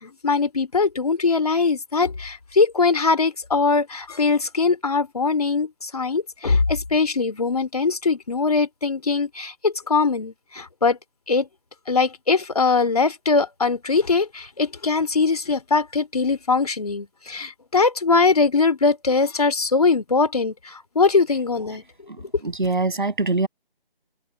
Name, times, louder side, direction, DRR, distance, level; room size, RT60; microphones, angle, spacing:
voice 1, 0.0-11.0 11.3-11.5 11.9-21.8, left 4 dB, 40° left, 2.8 m, -21 dB
voice 2, 22.1-23.5, right 3 dB, 55° right, 7.0 m, -24 dB
figure-of-eight pair, 175°, 29 cm